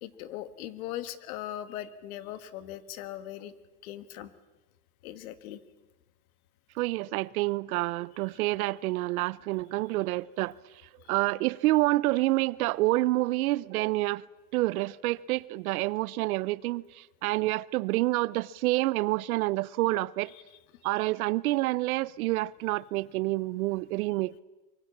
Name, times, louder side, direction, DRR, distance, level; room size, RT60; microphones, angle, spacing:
voice 1, 0.0-3.5 3.8-4.3 5.0-5.6 11.0-11.1 20.3-20.4, left 12 dB, 60° left, 1.7 m, -39 dB
voice 2, 6.8-10.5 11.1-14.2 14.5-20.3 20.8-24.4, right 19 dB, 60° right, 0.7 m, -28 dB
24.5 x 23.0 x 7.2 m
supercardioid pair, 145°, 48 cm